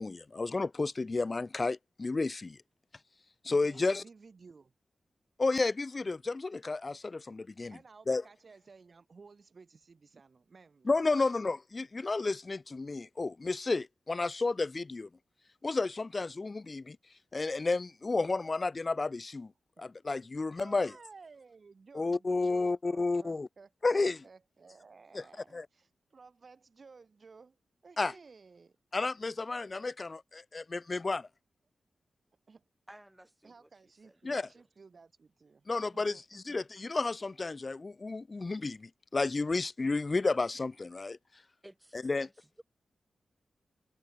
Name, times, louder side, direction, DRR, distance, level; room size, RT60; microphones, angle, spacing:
voice 1, 0.0-2.6 3.4-4.0 5.4-7.8 8.1-8.2 10.9-15.1 15.6-17.0 17.3-19.5 19.8-20.9 21.9-23.5 23.8-24.2 25.1-25.2 25.5-25.7 28.0-28.1 28.9-31.3 34.2-34.4 35.7-41.2 42.0-42.3, left 3 dB, 40° left, 0.4 m, -32 dB
voice 2, 3.5-4.7 7.7-11.3 19.8-19.9 20.6-27.6 27.8-28.8 32.5-32.7 33.4-35.7 35.9-36.6, right 4 dB, 55° right, 2.0 m, -56 dB
voice 3, 32.9-34.6 41.6-42.6, right 1 dB, 10° right, 6.6 m, -56 dB
cardioid pair, 70°, 0 cm